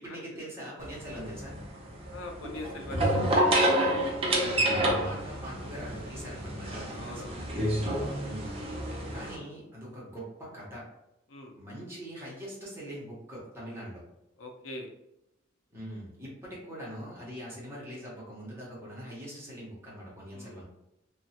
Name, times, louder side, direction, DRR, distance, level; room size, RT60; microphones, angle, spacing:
voice 1, 0.0-1.6 4.5-7.5 8.2-8.6 9.1-10.8 11.5-14.0 15.7-20.6, equal, 15° right, -6 dB, 1.0 m, -42 dB
sound 1, 0.8-9.3, right 1 dB, 30° right, 0.6 m, -29 dB
voice 2, 2.1-3.8 4.2-4.6 6.9-8.1 11.3-11.5 14.4-14.9 20.3-20.6, left 2 dB, 90° left, 3 dB, 0.5 m, -43 dB
3.0 x 2.4 x 2.8 m, 0.86 s
head